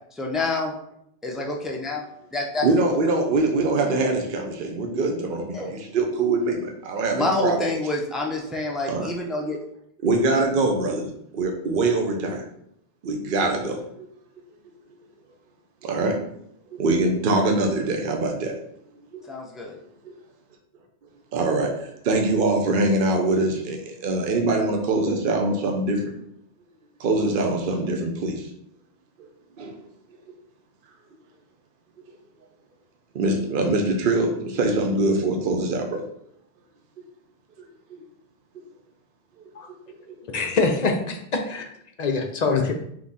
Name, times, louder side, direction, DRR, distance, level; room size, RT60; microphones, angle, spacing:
voice 1, 0.1-0.7 1.2-2.0 2.3-2.7 5.5-5.8 7.1-9.6 19.3-19.7, left 2 dB, ahead, -1 dB, 0.5 m, -27 dB
voice 2, 2.6-7.6 8.9-9.1 10.0-12.4 13.0-14.1 15.8-16.3 16.7-18.6 19.1-19.2 20.0-20.1 21.3-26.1 27.0-28.5 29.2-29.3 29.6-29.7 33.1-36.1 37.6-38.0 40.1-40.2, right 2 dB, 60° right, 3 dB, 0.8 m, -23 dB
voice 3, 40.3-41.7 42.0-42.7, left 4 dB, 50° left, 4 dB, 0.6 m, -24 dB
3.6 x 3.0 x 4.0 m, 0.73 s
omnidirectional pair, 1.0 m